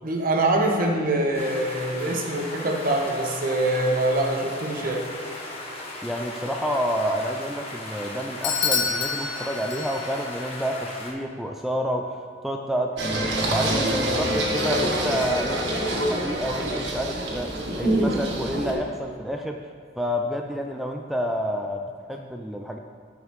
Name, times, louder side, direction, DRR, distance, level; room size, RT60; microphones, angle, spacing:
voice 1, 0.0-5.0, right 1 dB, 50° right, 2 dB, 1.1 m, -24 dB
sound 1, 1.3-11.1, left 2 dB, 35° left, 1.4 m, -37 dB
voice 2, 6.0-12.1 12.4-17.5 17.8-19.6 20.0-22.8, equal, ahead, 2 dB, 0.3 m, -29 dB
Bell / Doorbell, 8.4-10.3, left 6 dB, 75° left, 0.8 m, -27 dB
Singing, 13.0-18.7, right 1 dB, 70° right, 1.4 m, -25 dB
13.5 x 4.9 x 3.2 m, 2.1 s
head